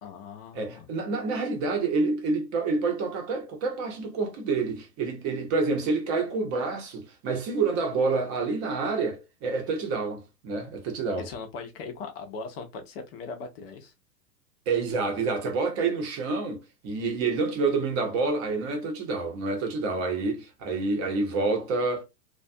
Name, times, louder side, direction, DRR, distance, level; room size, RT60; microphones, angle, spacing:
voice 1, 0.0-0.9 11.2-13.9, left 4 dB, 35° left, 0.6 m, -39 dB
voice 2, 0.5-11.3 14.7-22.0, right 4 dB, 30° right, 0.7 m, -28 dB
2.3 x 2.3 x 2.5 m
hypercardioid pair, 120°, 50 cm